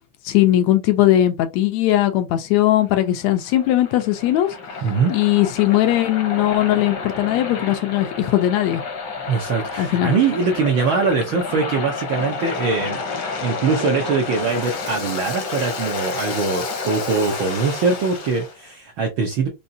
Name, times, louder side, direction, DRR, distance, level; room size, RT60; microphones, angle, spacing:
voice 1, 0.3-4.5 5.1-8.8 9.8-10.1, left 13 dB, 80° left, 1.8 m, -19 dB
Waves surf, 2.8-18.5, left 4 dB, 60° left, 1.2 m, -30 dB
voice 2, 4.8-5.1 9.3-19.5, right 4 dB, 70° right, 1.2 m, -22 dB
5.4 x 2.8 x 2.7 m
omnidirectional pair, 3.3 m